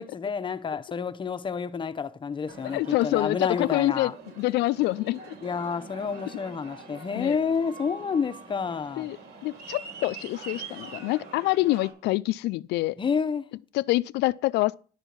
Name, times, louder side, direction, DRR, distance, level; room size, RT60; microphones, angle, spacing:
voice 1, 0.0-4.1 5.4-9.1 13.0-13.5, left 6 dB, 30° left, 0.7 m, -29 dB
Aircraft, 2.5-11.9, right 4 dB, 80° right, 5.3 m, -44 dB
voice 2, 2.7-5.2 7.2-7.4 9.0-9.2 9.4-13.0 13.7-14.7, left 18 dB, 80° left, 0.4 m, -26 dB
11.0 x 4.5 x 8.1 m
cardioid pair, 110°, 17 cm